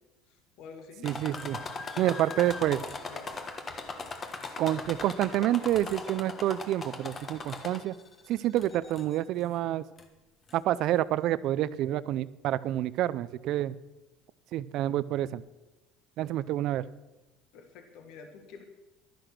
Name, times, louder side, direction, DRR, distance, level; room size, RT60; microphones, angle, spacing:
voice 1, 0.3-1.1 1.6-2.5 3.1-3.3 17.5-18.6, left 5 dB, 65° left, 5 dB, 1.7 m, -49 dB
sound 1, 1.0-8.1 8.6-9.2 10.0-10.1 10.5-10.6, left 3 dB, 30° left, 1.3 m, -39 dB
voice 2, 1.0-1.6 2.0-2.8 4.6-7.9 8.3-9.8 10.5-13.8 14.5-15.4 16.2-16.8, right 13 dB, 60° right, 18 dB, 0.5 m, -28 dB
12.0 x 10.0 x 6.1 m, 1.1 s
cardioid pair, 125°, 0 cm